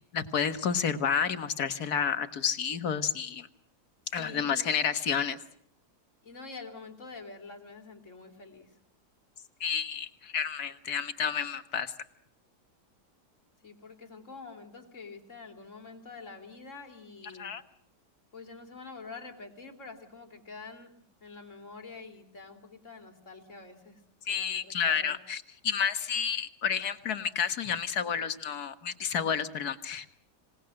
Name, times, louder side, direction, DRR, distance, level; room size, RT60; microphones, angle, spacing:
voice 1, 0.1-3.5 4.1-5.4 9.6-11.9 17.4-17.6 24.3-30.1, left 7 dB, 65° left, 10 dB, 1.8 m, -30 dB
voice 2, 4.1-4.7 6.2-8.7 13.6-17.5 18.3-20.9 21.2-24.0 24.3-25.2, left 4 dB, 45° left, 5 dB, 3.3 m, -46 dB
26.0 x 19.0 x 7.7 m, 0.69 s
omnidirectional pair, 1.8 m